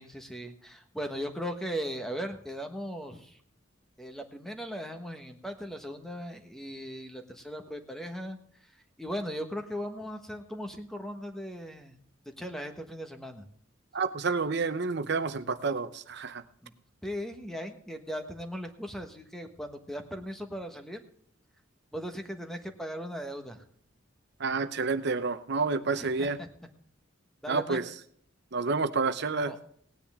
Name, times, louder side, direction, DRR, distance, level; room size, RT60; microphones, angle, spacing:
voice 1, 0.0-3.4 4.0-8.4 9.0-12.0 12.4-13.4 16.6-16.7 17.0-21.0 21.9-23.6 25.9-26.5 27.4-27.8 29.3-29.6, equal, ahead, 5 dB, 1.3 m, -38 dB
voice 2, 13.9-16.4 24.4-26.4 27.5-27.8 28.5-29.5, right 4 dB, 60° right, 10 dB, 0.7 m, -29 dB
17.5 x 9.9 x 3.6 m, 0.62 s
head